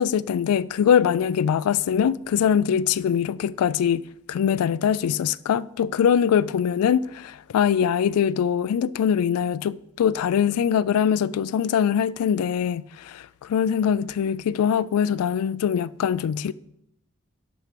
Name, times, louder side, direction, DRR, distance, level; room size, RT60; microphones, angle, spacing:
voice 1, 0.0-16.5, left 8 dB, 85° left, 0.3 m, -22 dB
7.4 x 6.1 x 5.2 m
head